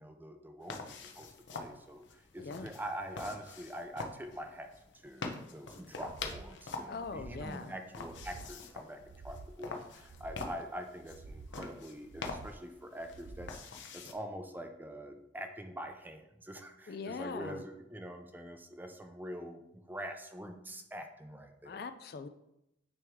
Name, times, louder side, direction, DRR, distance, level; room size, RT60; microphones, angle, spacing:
voice 1, 0.0-21.8, equal, 10° right, 5 dB, 0.5 m, -45 dB
sound 1, 0.6-14.1, left 4 dB, 80° left, 0.7 m, -46 dB
voice 2, 2.4-2.7 6.9-7.7 16.9-17.6 21.7-22.3, left 4 dB, 55° left, 11 dB, 0.4 m, -41 dB
sound 2, 6.0-6.5 6.9-7.5 7.9-8.5 8.9-9.5 10.0-10.6 11.0-11.6 12.0-12.6 13.0-13.6, right 3 dB, 65° right, 0.4 m, -50 dB
8.9 x 3.1 x 3.6 m, 0.83 s
head